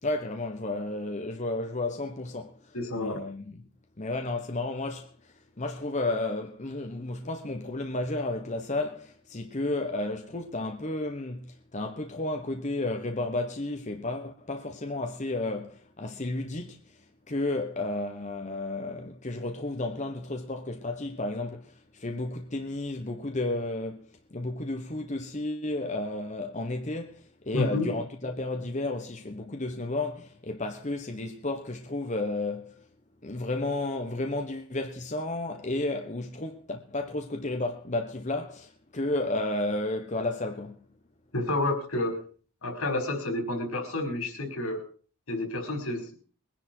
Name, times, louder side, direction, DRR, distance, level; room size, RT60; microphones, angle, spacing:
voice 1, 0.0-3.6 4.0-32.8 33.2-40.8, left 2 dB, 35° left, 1.1 m, -32 dB
voice 2, 2.7-3.2 27.5-27.9 41.3-42.2 42.6-44.8 45.3-46.0, left 2 dB, 80° left, 4.7 m, -30 dB
21.5 x 10.5 x 4.5 m
head